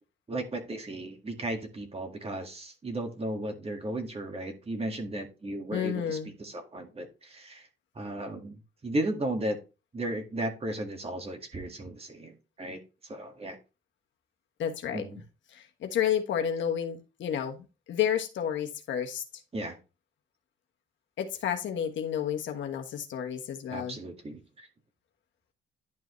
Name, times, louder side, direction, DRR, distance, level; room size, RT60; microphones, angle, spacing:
voice 1, 0.3-7.7 8.0-9.6 9.9-12.8 13.1-13.6 14.9-15.2 19.5-19.8 23.7-24.7, right 1 dB, 30° right, 4 dB, 1.9 m, -35 dB
voice 2, 5.7-6.3 14.6-15.0 15.5-19.2 21.2-24.0, left 9 dB, 70° left, 4 dB, 1.3 m, -31 dB
11.0 x 4.8 x 3.2 m, 0.30 s
cardioid pair, 90°, 20 cm